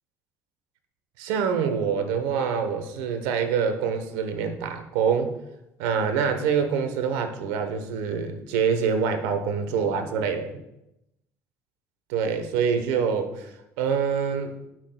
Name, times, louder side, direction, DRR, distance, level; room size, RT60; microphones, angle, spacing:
voice 1, 1.2-5.3 5.8-10.5 12.1-13.5 13.8-14.5, right 6 dB, 85° right, 7 dB, 1.1 m, -25 dB
17.5 x 6.0 x 2.3 m, 0.88 s
supercardioid pair, 70°, 8 cm